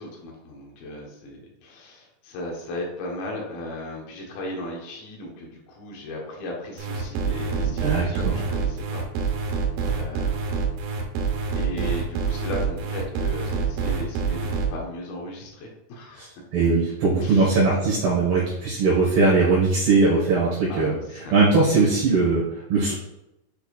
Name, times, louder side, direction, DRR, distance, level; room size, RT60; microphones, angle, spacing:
voice 1, 0.0-9.6 9.9-10.4 11.6-16.3 17.2-17.6 20.7-21.6, left 1 dB, 75° left, -1 dB, 2.2 m, -36 dB
sound 1, 6.8-14.7, right 5 dB, 85° right, 3.7 m, -26 dB
voice 2, 7.6-8.5 16.1-16.3 16.5-22.9, right 3 dB, 65° right, -7 dB, 2.9 m, -20 dB
8.6 x 4.6 x 2.4 m, 0.89 s
omnidirectional pair, 5.9 m